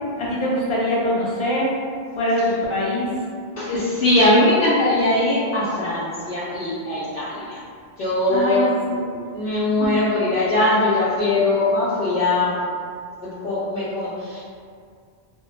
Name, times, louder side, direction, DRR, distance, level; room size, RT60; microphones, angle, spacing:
voice 1, 0.2-1.7 2.2-3.1 8.3-9.3, equal, 55° left, -6 dB, 0.3 m, -23 dB
voice 2, 3.6-7.6 8.0-8.7 9.3-12.6 13.2-14.4, left 2 dB, 75° left, -10 dB, 0.8 m, -21 dB
2.1 x 2.1 x 2.9 m, 2.1 s
omnidirectional pair, 1.1 m